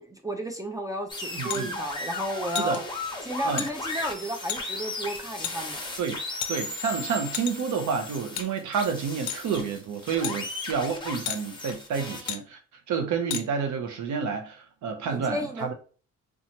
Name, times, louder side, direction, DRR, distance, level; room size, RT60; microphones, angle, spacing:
voice 1, 0.0-2.8 3.2-5.8 15.0-15.7, equal, 10° right, 0.4 m, -32 dB
sound 1, 1.1-12.3, left 2 dB, 15° left, 0.7 m, -36 dB
voice 2, 1.4-1.7 2.6-2.8 3.4-3.7 6.0-6.2 6.5-12.6 12.9-15.7, right 6 dB, 70° right, 0.7 m, -29 dB
sound 2, 1.5-1.6 2.5-2.8 3.6-3.7 4.5-4.6 5.4-5.6 6.4-6.8 7.3-7.7 8.4-8.5 9.3-9.5 10.2-10.4 11.3-11.4 12.3-12.4 13.3-13.4, left 11 dB, 70° left, 0.4 m, -32 dB
2.8 x 2.3 x 2.7 m
cardioid pair, 90°, 30 cm